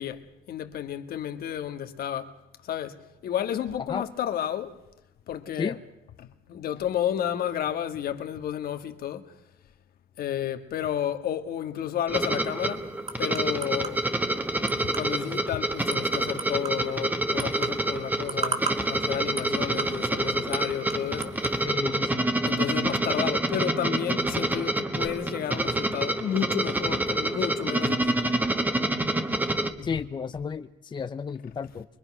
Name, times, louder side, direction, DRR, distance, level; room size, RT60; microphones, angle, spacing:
voice 1, 0.0-2.3 2.6-4.8 5.3-5.8 6.2-9.3 10.2-12.9 13.2-14.1 14.9-21.4 22.5-28.3 29.8-30.0, left 10 dB, 65° left, 1.7 m, -31 dB
sound 1, 12.1-29.7, right 1 dB, 10° right, 1.6 m, -27 dB
sound 2, 12.2-21.6, right 5 dB, 40° right, 3.1 m, -39 dB
voice 2, 21.6-22.3 29.8-31.9, left 6 dB, 25° left, 0.7 m, -32 dB
24.0 x 23.0 x 6.1 m
cardioid pair, 110°, 17 cm